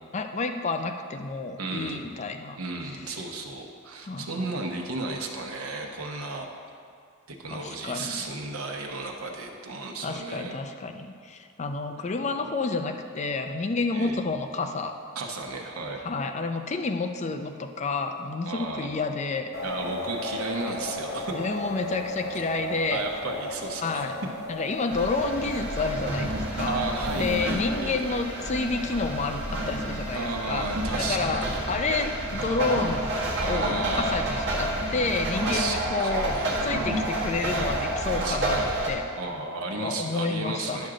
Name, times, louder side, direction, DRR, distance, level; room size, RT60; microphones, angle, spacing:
voice 1, 0.1-2.6 4.1-4.5 7.5-8.2 10.0-14.9 16.0-19.5 21.3-23.0 23.8-24.2 24.5-26.8 27.2-30.7 31.0-33.1 33.4-36.4 36.6-38.6 38.9-39.0 39.8-40.9, left 3 dB, 35° left, 6 dB, 0.4 m, -29 dB
voice 2, 1.6-2.1 2.6-6.5 7.3-10.6 13.9-14.2 15.1-16.1 18.4-18.9 19.6-21.3 22.9-24.1 26.6-28.2 28.9-29.0 30.1-31.6 33.4-34.6 35.3-36.6 37.5-38.7 39.2-40.9, right 3 dB, 85° right, 2 dB, 1.0 m, -34 dB
sound 1, 19.5-31.1, left 1 dB, 50° left, 0.9 m, -37 dB
sound 2, 24.9-38.9, right 1 dB, 55° right, 1.5 m, -29 dB
10.5 x 6.3 x 3.8 m, 2.3 s
head